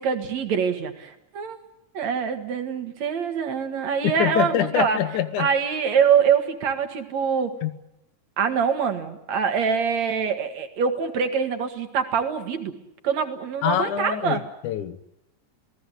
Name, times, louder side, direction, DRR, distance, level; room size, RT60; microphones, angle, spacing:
voice 1, 0.0-1.6 1.9-5.0 5.4-7.5 8.4-12.8 13.0-14.4, right 6 dB, 65° right, 3.0 m, -24 dB
voice 2, 4.0-5.5 7.6-7.7 13.6-15.0, left 10 dB, 80° left, 2.6 m, -25 dB
28.0 x 18.0 x 8.2 m
omnidirectional pair, 3.5 m